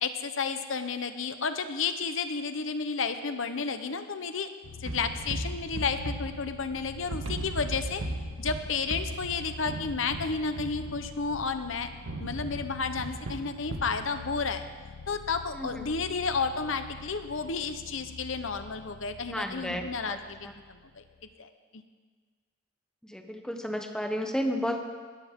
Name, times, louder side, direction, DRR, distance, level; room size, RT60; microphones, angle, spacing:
voice 1, 0.0-4.5 4.8-8.0 8.4-14.6 15.1-21.0 21.4-21.8, left 5 dB, 65° left, 9 dB, 0.9 m, -32 dB
sound 1, 4.6-21.3, left 3 dB, 85° left, 0.6 m, -45 dB
sound 2, 4.9-6.8 7.1-11.6 12.1-14.0, right 1 dB, 85° right, 1.7 m, -37 dB
voice 2, 15.5-15.9 19.3-20.2 20.4-20.5 23.0-24.8, equal, 5° left, 4 dB, 0.9 m, -32 dB
20.0 x 14.5 x 3.7 m, 1.5 s
head